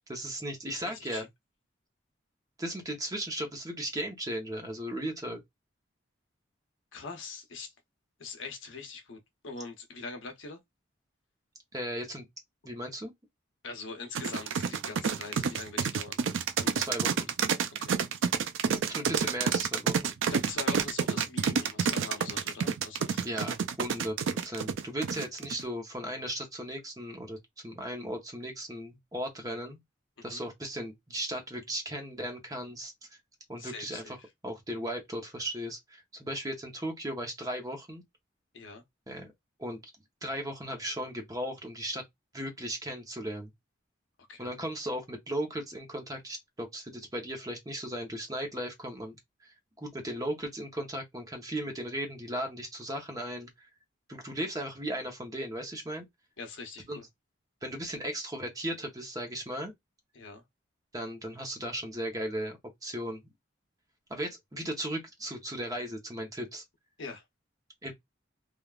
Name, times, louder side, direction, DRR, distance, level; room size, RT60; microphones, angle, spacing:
voice 1, 0.1-1.3 2.6-5.4 11.7-12.3 12.6-13.1 16.7-17.3 18.7-20.2 23.2-27.4 27.6-29.8 30.2-32.9 33.5-34.2 34.4-38.0 39.1-39.3 39.6-39.9 40.2-42.0 42.3-43.5 44.4-49.2 49.4-53.7 54.1-56.1 56.9-57.0 57.6-59.7 60.9-63.2 64.1-66.6 67.8-67.9, right 1 dB, 20° right, 0.8 m, -36 dB
voice 2, 0.8-1.3 6.9-7.7 8.2-9.2 9.4-10.6 13.6-16.2 16.6-17.0 17.8-18.0 20.3-23.3 30.3-30.4 33.6-34.2 38.5-38.8 44.3-44.5 56.4-57.0 60.1-60.4 67.0-67.2, left 4 dB, 75° left, 0.8 m, -42 dB
sound 1, 14.1-25.6, right 6 dB, 75° right, 0.4 m, -28 dB
3.4 x 2.3 x 2.3 m
head